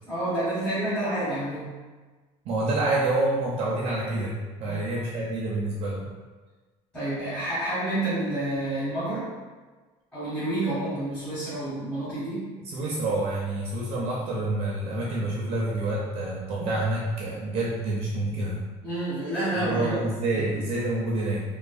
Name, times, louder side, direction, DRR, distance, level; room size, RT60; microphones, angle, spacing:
voice 1, 0.0-1.7 4.6-4.8 6.9-9.3 10.1-12.4 18.8-19.9 20.3-20.5, right 1 dB, 10° left, -14 dB, 1.0 m, -29 dB
voice 2, 2.4-6.1 12.6-18.6 19.6-21.4, right 2 dB, 40° right, -4 dB, 0.4 m, -28 dB
3.1 x 2.1 x 2.5 m, 1.3 s
cardioid pair, 170°, 14 cm